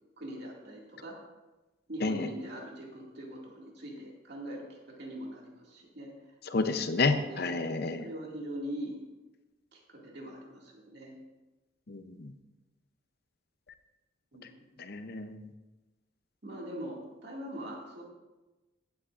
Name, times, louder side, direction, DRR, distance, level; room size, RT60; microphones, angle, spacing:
voice 1, 0.2-1.2 1.9-6.1 7.3-7.5 8.0-9.0 9.7-11.1 14.3-14.7 16.4-18.0, right 1 dB, 55° right, -2 dB, 2.2 m, -42 dB
voice 2, 6.5-8.1 11.9-12.3 14.8-15.4, left 3 dB, 50° left, 8 dB, 0.6 m, -30 dB
16.0 x 8.4 x 2.5 m, 1.1 s
head